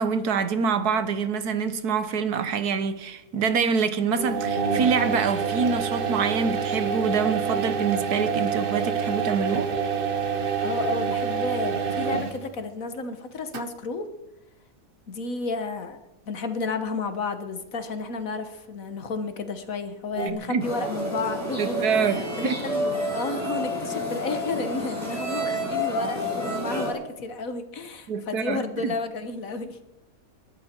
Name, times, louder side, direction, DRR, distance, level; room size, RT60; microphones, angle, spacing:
voice 1, 0.0-9.7 20.3-20.6 21.6-22.5 28.1-28.9, right 6 dB, 80° right, 1.6 m, -26 dB
sound 1, 4.2-12.5 13.5-13.6 20.2-20.3, right 6 dB, 40° right, 1.1 m, -27 dB
voice 2, 10.6-14.1 15.1-16.0 16.3-22.9 23.1-29.8, left 3 dB, 60° left, 1.8 m, -32 dB
sound 2, 20.6-26.9, equal, 10° right, 5.4 m, -29 dB
22.0 x 12.0 x 4.5 m
omnidirectional pair, 1.6 m